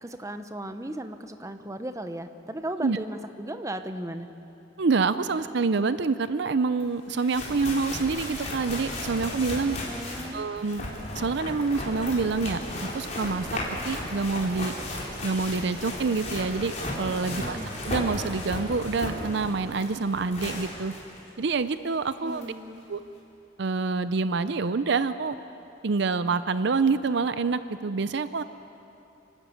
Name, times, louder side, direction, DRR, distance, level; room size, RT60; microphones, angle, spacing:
voice 1, 0.0-4.3 9.9-10.5 17.3-17.7 22.2-22.8, right 1 dB, 15° right, 8 dB, 0.8 m, -36 dB
voice 2, 4.8-9.8 10.3-10.8 11.1-12.6 12.9-13.5 13.9-14.7 15.2-17.6 17.8-20.9 21.4-22.5 22.9-23.0 23.6-25.4 25.8-28.4, right 4 dB, 60° right, 13 dB, 0.5 m, -27 dB
sound 1, 6.8-6.9 7.1-21.2 21.6-21.7 22.4-22.5, left 1 dB, 35° left, 4.3 m, -35 dB
27.5 x 12.5 x 8.5 m, 2.9 s
head